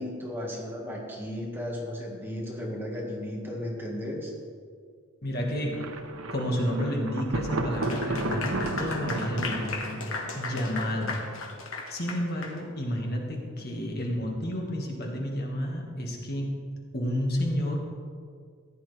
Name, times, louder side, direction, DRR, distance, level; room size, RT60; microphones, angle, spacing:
voice 1, 0.0-4.3 13.6-13.7, left 1 dB, 10° right, -2 dB, 1.7 m, -35 dB
voice 2, 5.2-5.8 6.3-10.0 10.3-11.2 11.9-16.5 16.9-17.8, equal, 50° left, 0 dB, 1.7 m, -30 dB
Thunder, 5.7-11.5, right 2 dB, 85° right, 0.9 m, -34 dB
Clapping / Applause, 7.7-12.6, left 3 dB, 75° left, 1.5 m, -36 dB
15.0 x 10.0 x 3.3 m, 2.1 s
head